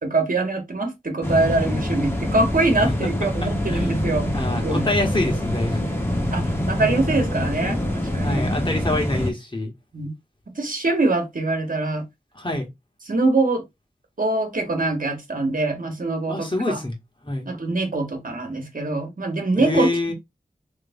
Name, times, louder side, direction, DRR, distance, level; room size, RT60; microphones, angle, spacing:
voice 1, 0.0-4.3 4.6-4.9 6.3-8.5 9.9-10.1 10.5-12.0 13.1-13.6 14.2-16.8 17.4-19.9, right 2 dB, 60° right, 1.5 m, -23 dB
sound 1, 1.2-9.3, left 1 dB, 15° left, 1.3 m, -25 dB
voice 2, 3.4-3.9 4.3-5.9 8.2-9.7 12.3-12.7 16.3-16.9 17.2-17.5 19.6-20.1, left 2 dB, 30° left, 1.7 m, -26 dB
3.3 x 3.3 x 3.6 m
wide cardioid pair, 55°, 16 cm